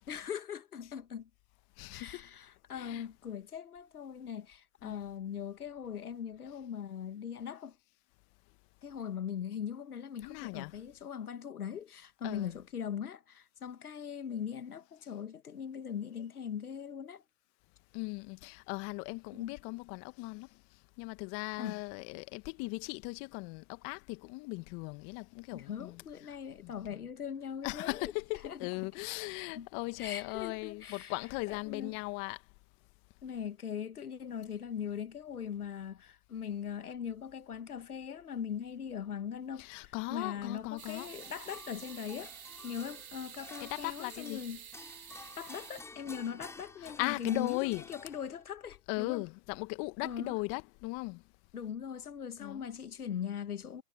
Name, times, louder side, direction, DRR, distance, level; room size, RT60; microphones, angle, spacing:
voice 1, 0.1-1.3 1.9-7.8 8.8-17.2 19.3-19.6 21.6-21.8 25.5-29.0 29.5-29.7 30.0-32.0 33.2-42.3 42.6-44.6 45.4-49.3 50.0-50.4 51.5-53.8, left 8 dB, 70° left, 1.8 m, -40 dB
voice 2, 1.8-2.2 2.8-3.0 4.8-4.9 10.2-10.7 12.2-12.5 17.9-20.5 21.0-26.0 26.6-26.7 27.6-32.4 39.6-41.1 43.6-44.4 46.8-47.8 48.9-51.2 52.4-52.6, left 29 dB, 30° left, 1.6 m, -38 dB
sound 1, 40.8-45.8, right 9 dB, 65° right, 3.3 m, -50 dB
sound 2, 40.9-48.6, left 3 dB, 5° left, 7.1 m, -52 dB
figure-of-eight pair, 125°, 46 cm